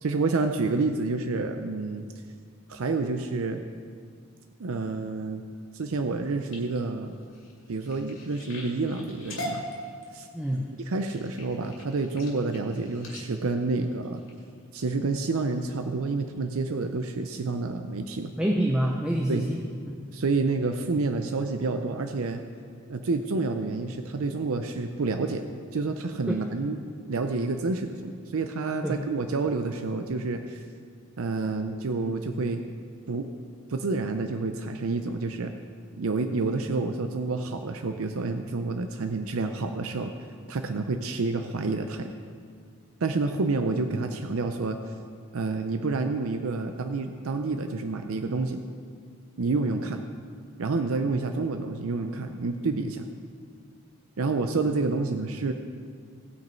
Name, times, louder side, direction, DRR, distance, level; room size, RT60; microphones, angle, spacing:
voice 1, 0.0-2.1 2.7-3.6 4.6-5.4 5.7-7.2 7.7-9.7 10.1-10.3 10.9-14.2 14.7-18.3 19.3-19.5 20.1-22.4 22.9-25.4 25.7-26.8 27.1-30.6 31.2-32.6 33.1-33.3 33.7-35.5 36.0-40.1 40.5-42.2 43.0-44.8 45.3-48.6 49.4-50.0 50.6-53.0 54.2-55.5, right 3 dB, 75° right, 6 dB, 0.6 m, -29 dB
sound 1, 6.1-14.8 15.4-15.7 16.2-16.5 17.0-17.1 17.4-17.5, left 1 dB, 60° left, 2.4 m, -42 dB
voice 2, 10.3-10.7 18.4-20.0 26.3-26.4 28.8-29.0, right 1 dB, 5° right, -1 dB, 0.6 m, -27 dB
17.5 x 6.2 x 4.4 m, 2.1 s
head